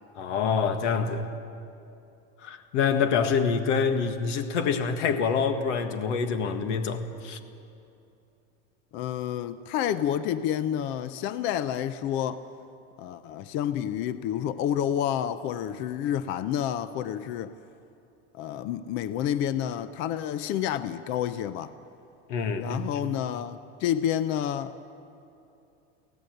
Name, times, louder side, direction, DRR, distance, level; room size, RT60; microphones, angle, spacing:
voice 1, 0.2-1.3 2.4-7.4 22.3-22.8, left 6 dB, 80° left, 1.8 m, -26 dB
voice 2, 8.9-12.4 13.0-17.5 18.3-21.7 22.6-24.9, left 10 dB, 35° left, 0.5 m, -29 dB
23.5 x 17.0 x 7.9 m
supercardioid pair, 165°, 36 cm